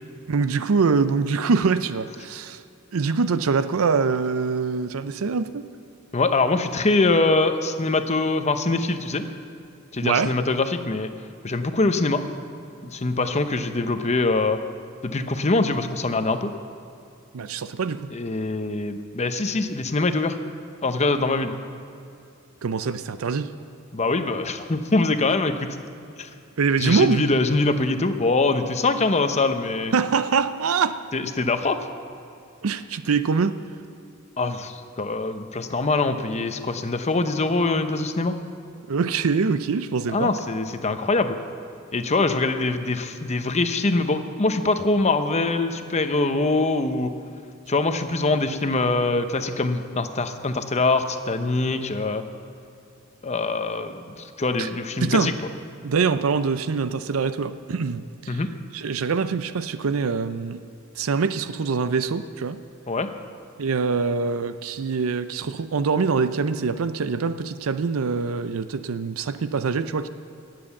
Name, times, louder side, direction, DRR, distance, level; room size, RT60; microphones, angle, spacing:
voice 1, 0.3-2.6 2.9-5.6 10.0-10.3 17.3-18.1 22.6-23.5 26.6-27.2 29.9-31.0 32.6-33.6 38.9-40.3 54.6-54.7 55.0-55.3 55.8-58.4 58.7-60.6 61.0-62.6 63.6-70.1, right 5 dB, 90° right, 12 dB, 0.5 m, -24 dB
voice 2, 6.1-9.2 9.9-11.1 11.4-12.2 12.8-14.6 15.0-16.5 18.1-20.4 20.8-21.5 23.9-25.7 26.2-26.3 26.8-29.9 31.1-31.8 34.4-38.4 40.1-41.4 41.9-47.1 47.7-52.2 53.2-55.3 58.3-58.5 62.9-63.1, left 3 dB, 35° left, 8 dB, 0.8 m, -23 dB
18.5 x 7.8 x 7.2 m, 2.5 s
head